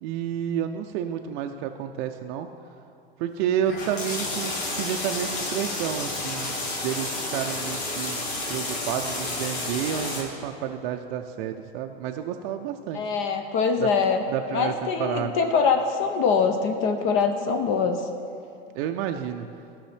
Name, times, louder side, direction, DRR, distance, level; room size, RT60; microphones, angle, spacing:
voice 1, 0.0-2.5 3.2-8.2 8.5-13.0 13.8-13.9 14.3-15.4 18.8-19.5, right 9 dB, 55° right, 5 dB, 0.4 m, -30 dB
sound 1, 3.7-10.2, left 2 dB, 70° left, 1.8 m, -31 dB
voice 2, 12.9-14.2 14.5-18.1, left 5 dB, 40° left, 6 dB, 0.5 m, -23 dB
11.5 x 5.4 x 3.3 m, 2.6 s
hypercardioid pair, 115°, 31 cm